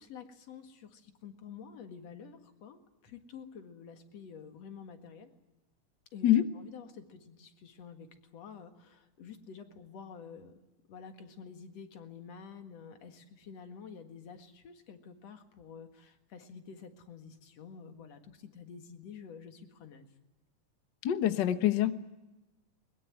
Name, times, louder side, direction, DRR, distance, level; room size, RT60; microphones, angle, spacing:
voice 1, 0.0-5.3 6.1-10.6 10.9-20.1, left 6 dB, 55° left, 7 dB, 2.7 m, -49 dB
voice 2, 21.0-21.9, left 12 dB, 90° left, 10 dB, 0.9 m, -25 dB
22.0 x 21.5 x 9.5 m, 1.1 s
omnidirectional pair, 3.7 m